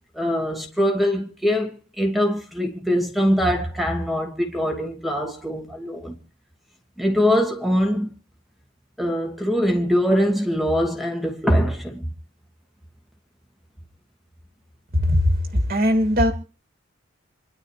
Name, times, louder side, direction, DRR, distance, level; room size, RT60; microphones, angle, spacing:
voice 1, 0.1-6.1 7.0-8.1 9.0-12.1, equal, ahead, 2.6 m, -22 dB
voice 2, 14.9-16.3, left 1 dB, 45° right, 2.5 m, -19 dB
28.5 x 12.0 x 3.3 m
head